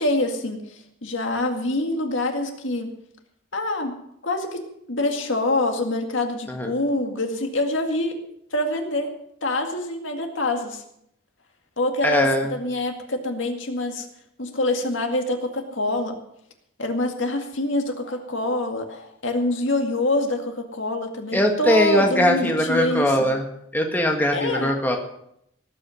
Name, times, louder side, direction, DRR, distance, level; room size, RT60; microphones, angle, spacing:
voice 1, 0.0-2.9 3.5-4.0 4.2-4.6 4.9-8.2 8.5-9.1 9.4-10.8 11.8-14.1 14.4-16.2 16.8-23.3 24.3-24.7, left 2 dB, 75° left, 4 dB, 2.1 m, -25 dB
voice 2, 12.0-12.5 21.3-23.4 23.7-25.0, equal, 10° left, 2 dB, 1.6 m, -21 dB
18.0 x 8.8 x 6.4 m, 0.74 s
head